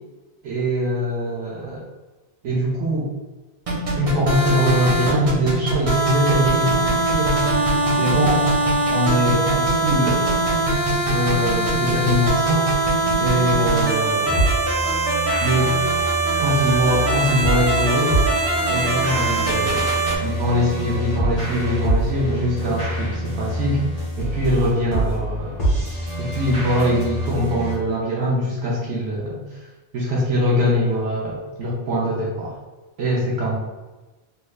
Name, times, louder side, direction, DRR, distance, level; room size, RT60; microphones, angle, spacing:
voice 1, 0.4-1.8 2.4-3.1 4.0-7.4 7.9-10.2 11.0-12.7 13.2-14.4 15.4-15.8 16.4-18.2 18.7-19.9 20.2-23.8 24.2-25.9 26.2-29.4 29.9-32.5 33.0-33.5, equal, 80° right, -5 dB, 1.0 m, -22 dB
sound 1, 3.7-20.2, right 2 dB, 40° right, 0.5 m, -21 dB
sound 2, 14.2-27.7, equal, 45° left, 1.5 m, -26 dB
3.2 x 3.0 x 2.3 m, 1.2 s
omnidirectional pair, 1.2 m